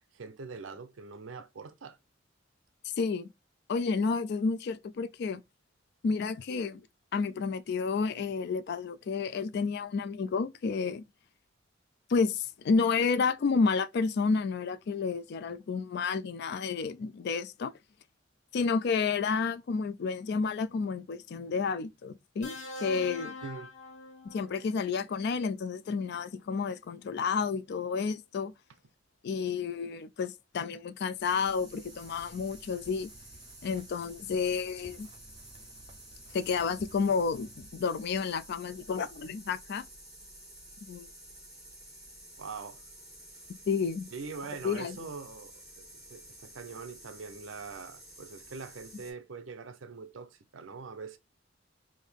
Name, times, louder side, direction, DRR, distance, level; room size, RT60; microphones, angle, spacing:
voice 1, 0.1-2.0 23.4-23.7 42.4-42.8 44.1-45.5 45.8-51.2, right 5 dB, 75° right, 0.6 m, -43 dB
voice 2, 3.0-3.3 3.7-5.4 6.0-6.8 7.1-11.0 12.1-17.7 18.5-23.3 24.2-28.5 29.2-33.1 33.6-35.1 36.3-39.9 40.8-41.1 43.7-44.1 44.6-45.0, left 5 dB, 55° left, 0.3 m, -30 dB
sound 1, 22.4-24.7 26.0-26.2, left 1 dB, 40° left, 1.5 m, -43 dB
sound 2, 31.2-49.1, right 1 dB, 5° right, 1.8 m, -51 dB
sound 3, 31.8-37.7, right 2 dB, 25° right, 0.5 m, -55 dB
3.6 x 2.6 x 3.4 m
head